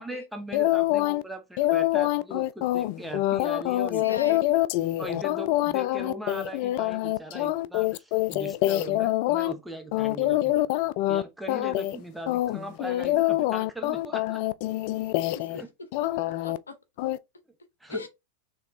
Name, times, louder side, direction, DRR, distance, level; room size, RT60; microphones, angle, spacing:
voice 1, 0.0-4.4 5.0-10.6 11.1-14.4 15.5-15.7 17.8-18.0, equal, 5° right, 1.2 m, -39 dB
sound 1, 0.5-1.2 1.6-9.5 9.9-11.2 11.5-12.0 12.3-15.6 15.9-16.6 17.0-17.2, left 16 dB, 55° left, 0.4 m, -25 dB
voice 2, 3.8-4.4 15.0-15.1 15.3-15.6 16.0-16.7 17.9-18.1, left 4 dB, 90° left, 0.8 m, -38 dB
4.6 x 3.4 x 3.1 m
hypercardioid pair, 95°, 0 cm